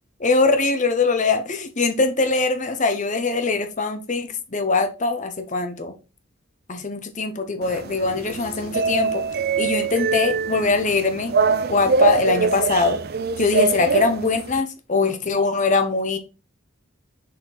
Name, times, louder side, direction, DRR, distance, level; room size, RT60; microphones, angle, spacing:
voice 1, 0.2-5.9 6.7-9.2 9.6-11.3 11.7-13.0 13.4-16.2, left 4 dB, 35° left, 0.9 m, -22 dB
sound 1, 7.6-14.6, right 4 dB, 50° right, 0.5 m, -23 dB
6.3 x 4.3 x 4.1 m
head